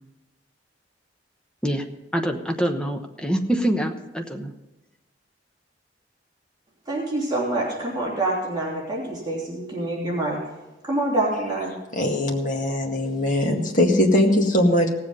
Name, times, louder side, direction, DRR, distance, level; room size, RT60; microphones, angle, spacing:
voice 1, 2.1-4.5, equal, 5° left, 4 dB, 1.0 m, -25 dB
voice 2, 6.9-10.4 10.8-11.8, right 2 dB, 25° right, -5 dB, 3.1 m, -26 dB
voice 3, 11.9-14.9, left 1 dB, 45° left, 1 dB, 1.9 m, -20 dB
17.5 x 7.7 x 5.5 m, 1.1 s
head